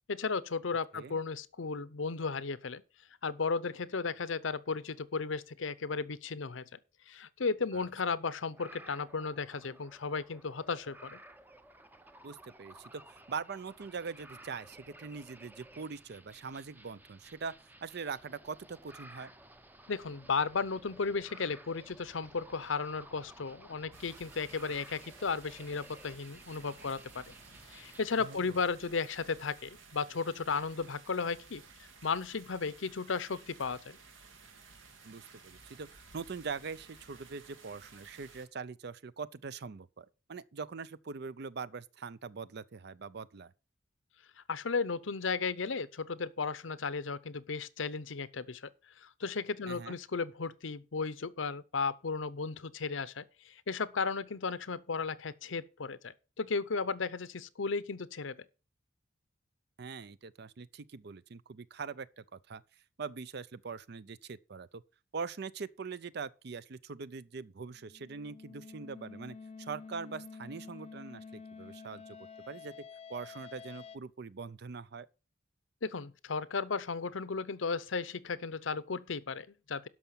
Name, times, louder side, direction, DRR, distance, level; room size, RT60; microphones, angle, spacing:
voice 1, 0.1-2.8 3.2-6.6 7.1-11.2 19.9-27.3 27.7-31.6 32.0-34.0 44.5-48.7 49.0-58.4 75.8-79.9, left 4 dB, 75° left, 0.7 m, -35 dB
sound 1, 8.5-28.2, right 1 dB, 10° right, 0.6 m, -55 dB
voice 2, 12.2-17.5 17.8-19.3 28.2-28.6 35.0-43.5 49.7-50.0 59.8-64.8 65.1-72.2 72.5-72.7 73.1-75.1, right 5 dB, 55° right, 0.5 m, -42 dB
sound 2, 23.9-38.5, right 4 dB, 75° right, 2.1 m, -56 dB
sound 3, 67.7-74.0, left 5 dB, 30° left, 0.8 m, -49 dB
12.5 x 5.7 x 5.8 m
head